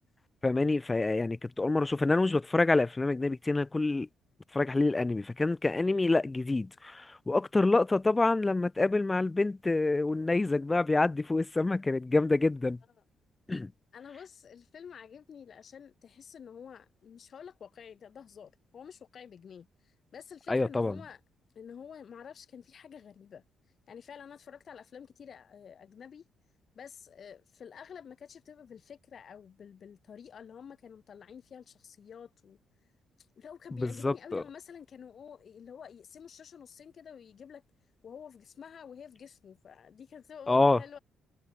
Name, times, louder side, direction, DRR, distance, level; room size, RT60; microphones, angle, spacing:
voice 1, 0.4-4.1 4.5-12.8 13.5-13.7 20.5-21.0 33.8-34.4 40.5-40.8, left 2 dB, 20° left, 0.5 m, -27 dB
voice 2, 13.9-21.2 21.6-23.4 23.9-26.2 26.8-32.6 33.4-37.6 38.0-41.0, left 7 dB, 50° left, 3.8 m, -49 dB
cardioid pair, 90°, 0 cm